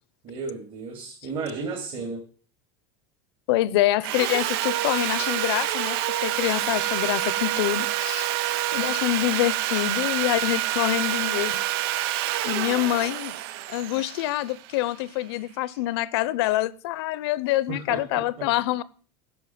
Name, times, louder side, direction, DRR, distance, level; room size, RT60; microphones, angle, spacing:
voice 1, 0.2-2.2 17.7-18.5, right 4 dB, 40° right, 2.9 m, -34 dB
voice 2, 3.5-8.3 8.7-11.6 12.4-13.3 13.7-18.8, left 15 dB, 75° left, 0.8 m, -26 dB
Sawing, 4.0-15.1, right 14 dB, 65° right, 0.6 m, -27 dB
11.0 x 6.4 x 8.7 m
supercardioid pair, 145°, 13 cm